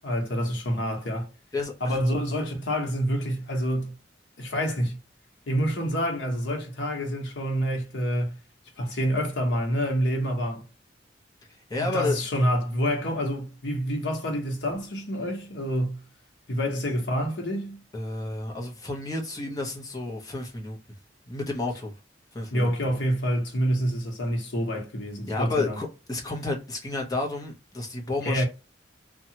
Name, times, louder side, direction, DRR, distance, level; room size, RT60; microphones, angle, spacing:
voice 1, 0.0-1.3 1.8-3.9 4.4-5.0 5.5-8.4 8.8-10.6 11.8-16.0 16.5-17.8 22.5-25.8 28.2-28.4, equal, 80° left, 0.9 m, -27 dB
voice 2, 1.5-2.0 11.5-12.2 17.9-20.8 21.3-21.9 22.3-22.7 25.3-28.4, left 2 dB, 20° left, 0.8 m, -31 dB
2.8 x 2.3 x 2.7 m
head